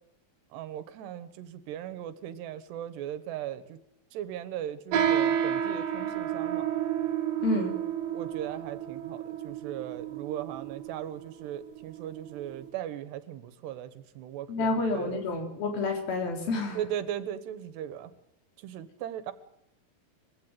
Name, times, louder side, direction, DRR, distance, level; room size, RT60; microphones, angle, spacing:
voice 1, 0.5-3.8 4.1-6.7 8.1-15.2 16.8-18.1 18.6-19.3, right 11 dB, 90° right, 14 dB, 3.5 m, -38 dB
sound 1, 4.9-12.7, right 9 dB, 65° right, 2.7 m, -31 dB
voice 2, 7.4-7.8 14.5-16.8, left 3 dB, 65° left, 4 dB, 5.5 m, -29 dB
22.0 x 16.0 x 9.1 m, 0.81 s
omnidirectional pair, 4.7 m